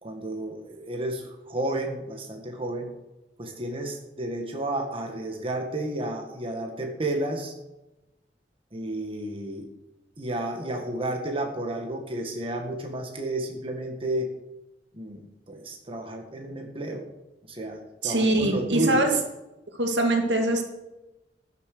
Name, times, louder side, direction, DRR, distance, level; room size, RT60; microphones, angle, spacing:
voice 1, 0.0-2.9 3.4-7.5 8.7-9.7 10.2-14.3 14.9-15.2 15.5-17.1 17.4-19.0, right 1 dB, 30° right, 2 dB, 1.7 m, -31 dB
voice 2, 18.0-19.1 19.8-20.6, right 1 dB, 75° right, 3 dB, 2.3 m, -23 dB
15.0 x 7.3 x 6.7 m, 0.99 s
head